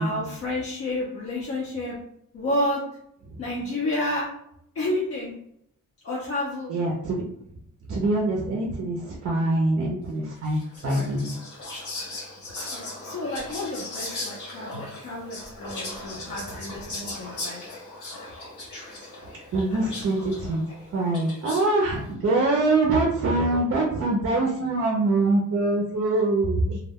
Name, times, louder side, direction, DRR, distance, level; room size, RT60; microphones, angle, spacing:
voice 1, 0.0-2.0 2.3-2.8 3.4-4.3 4.7-5.3 6.0-6.7 10.8-11.1 12.7-17.6, left 1 dB, 45° left, -5 dB, 0.5 m, -30 dB
voice 2, 6.7-7.2 7.9-10.6 10.8-11.3 19.5-20.6 20.9-26.8, right 2 dB, 45° right, -1 dB, 0.5 m, -24 dB
Whispering, 10.4-21.9, left 2 dB, 65° left, 1.3 m, -38 dB
2.2 x 2.1 x 3.4 m, 0.74 s
wide cardioid pair, 180°, 32 cm